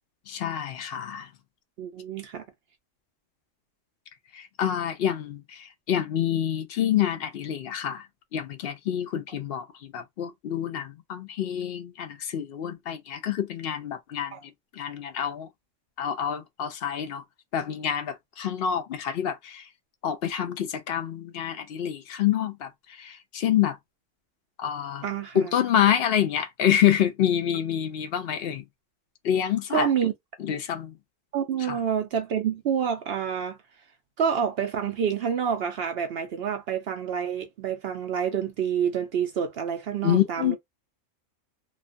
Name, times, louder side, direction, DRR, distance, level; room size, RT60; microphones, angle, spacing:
voice 1, 0.3-1.3 4.3-8.1 8.3-15.5 16.0-17.2 17.5-19.7 20.0-23.8 24.6-25.0 25.3-28.6 29.2-29.9 30.4-30.9 31.7-31.8 40.0-40.6, left 10 dB, 65° left, 0.6 m, -27 dB
voice 2, 1.8-2.4 14.3-14.4 25.0-25.5 29.7-30.1 31.3-33.6 34.2-40.6, right 8 dB, 60° right, 0.7 m, -28 dB
3.1 x 2.2 x 2.5 m
omnidirectional pair, 1.3 m